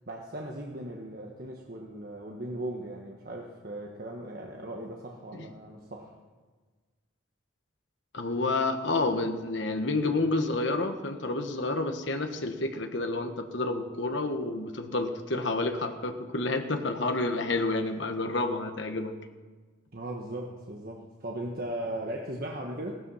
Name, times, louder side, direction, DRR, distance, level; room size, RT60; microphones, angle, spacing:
voice 1, 0.1-6.1 19.9-23.0, right 1 dB, 50° right, 0 dB, 1.3 m, -38 dB
voice 2, 8.1-19.1, left 2 dB, 65° left, 6 dB, 1.4 m, -29 dB
16.5 x 13.5 x 5.7 m, 1.4 s
head